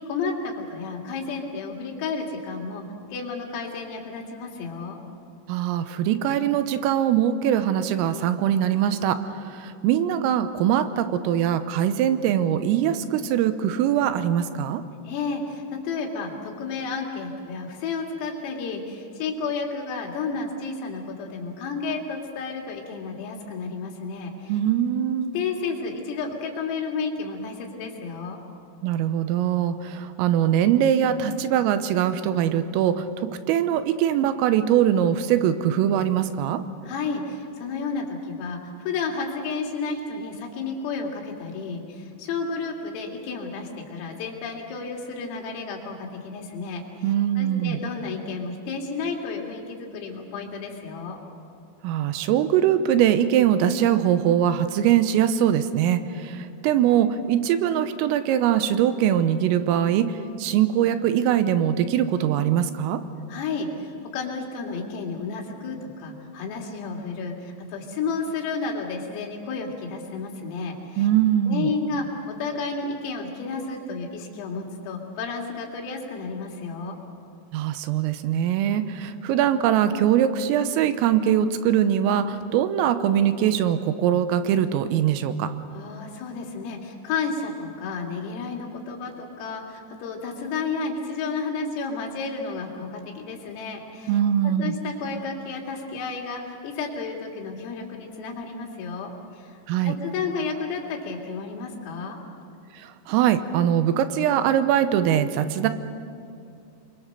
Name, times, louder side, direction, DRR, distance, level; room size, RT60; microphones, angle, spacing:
voice 1, 0.1-2.8 3.1-5.0 15.1-24.6 25.3-28.4 36.8-38.6 38.9-46.8 47.4-51.2 63.3-71.1 71.5-77.0 85.7-94.2 94.6-102.2, left 4 dB, 85° left, 0 dB, 5.2 m, -32 dB
voice 2, 5.5-14.8 24.5-25.3 28.8-36.6 47.0-47.8 51.8-63.0 71.0-71.7 77.5-85.5 94.1-94.7 99.7-100.0 102.7-105.7, right 10 dB, 90° right, 10 dB, 3.6 m, -22 dB
28.0 x 22.5 x 6.7 m, 2.4 s
omnidirectional pair, 5.9 m